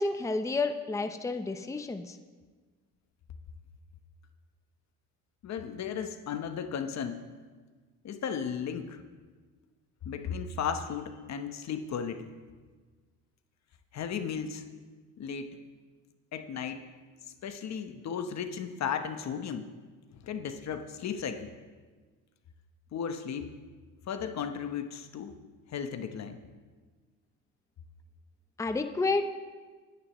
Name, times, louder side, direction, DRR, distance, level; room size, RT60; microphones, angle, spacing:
voice 1, 0.0-2.2 28.6-29.2, left 3 dB, 10° left, 8 dB, 0.7 m, -30 dB
voice 2, 5.4-7.3 8.0-9.0 10.0-12.3 13.9-14.6 15.2-15.5 16.3-16.8 17.4-19.7 20.1-21.5 22.9-23.5 24.1-25.3 25.7-26.4, left 7 dB, 50° left, 8 dB, 1.0 m, -35 dB
25.5 x 10.0 x 3.1 m, 1.4 s
cardioid pair, 100°, 34 cm